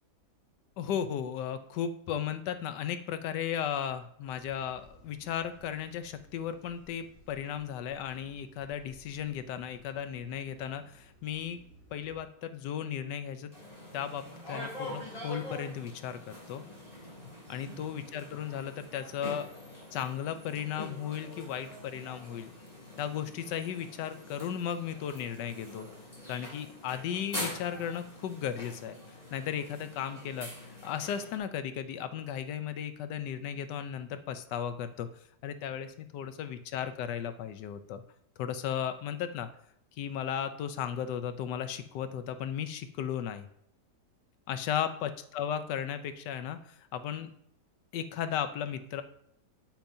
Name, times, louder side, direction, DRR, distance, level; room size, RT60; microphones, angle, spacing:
voice 1, 0.8-11.6 11.9-13.5 13.9-16.6 17.5-19.5 19.9-22.5 23.0-25.9 26.3-29.0 29.3-30.5 30.8-35.1 35.4-38.0 38.4-39.5 40.0-43.5 44.5-47.3 47.9-49.0, left 9 dB, 80° left, 10 dB, 1.2 m, -35 dB
sound 1, 4.2-12.2, equal, 45° left, 2.8 m, -59 dB
sound 2, 13.5-31.4, left 1 dB, 20° left, 2.9 m, -44 dB
9.0 x 7.2 x 2.6 m, 0.70 s
omnidirectional pair, 1.8 m